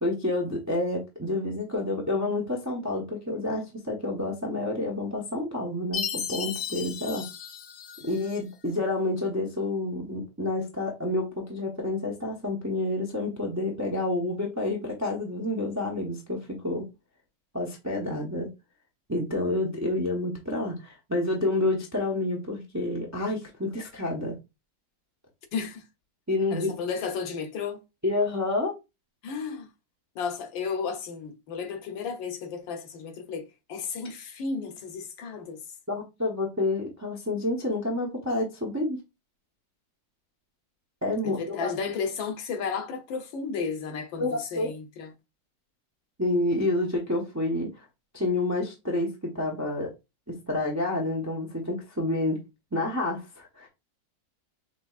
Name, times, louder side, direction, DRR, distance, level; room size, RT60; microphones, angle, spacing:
voice 1, 0.0-7.3 8.0-16.8 17.5-18.5 19.1-24.3 26.3-26.8 28.0-28.7 35.9-39.0 41.0-41.7 44.2-44.7 46.2-47.8 48.1-49.1 49.3-49.9 50.5-52.4 52.7-53.7, left 2 dB, 20° right, 0.4 m, -29 dB
Chime, 5.9-8.4, left 7 dB, 60° left, 0.7 m, -35 dB
voice 2, 25.5-25.8 26.5-27.8 29.2-29.7 30.1-35.6 41.2-45.1, left 5 dB, 85° left, 1.6 m, -33 dB
5.9 x 2.9 x 2.4 m
omnidirectional pair, 2.0 m